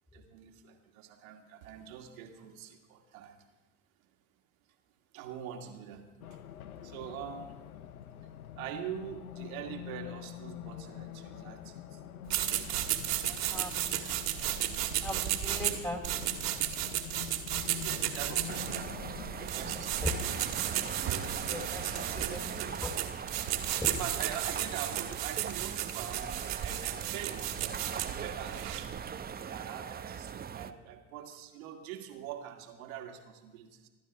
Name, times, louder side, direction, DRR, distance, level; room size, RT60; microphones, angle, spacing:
voice 1, 0.1-3.4 5.1-6.0 6.3-6.4 6.8-7.6 8.6-12.0 13.0-13.9 15.5-15.6 17.7-18.9 19.4-20.3 22.0-22.7 23.9-28.9 29.5-33.9, right 9 dB, 70° right, 3 dB, 2.3 m, -44 dB
Race car auto racing, 6.2-22.8, left 10 dB, 85° left, 0.8 m, -46 dB
sound 1, 12.3-29.0, right 12 dB, 55° right, 2.1 m, -34 dB
voice 2, 13.5-14.0 14.9-16.0 20.0-20.2 21.4-22.9 23.8-23.9, left 2 dB, 10° left, 2 dB, 2.7 m, -38 dB
sound 2, 18.5-30.7, right 7 dB, 20° right, 0.8 m, -40 dB
27.0 x 12.0 x 3.4 m, 1.2 s
hypercardioid pair, 75°, 42 cm